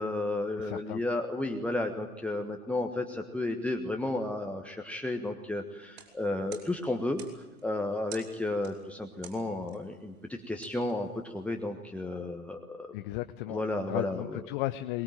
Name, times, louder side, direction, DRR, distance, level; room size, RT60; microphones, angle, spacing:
voice 1, 0.0-7.2 7.6-12.9 13.5-14.4, left 2 dB, 5° left, 2 dB, 1.3 m, -33 dB
voice 2, 0.6-1.0 12.9-13.6 13.9-15.0, left 17 dB, 35° left, 9 dB, 0.8 m, -34 dB
sound 1, 5.8-11.6, right 9 dB, 45° right, 5.9 m, -53 dB
23.0 x 21.0 x 9.1 m, 1.1 s
figure-of-eight pair, 95°, 44 cm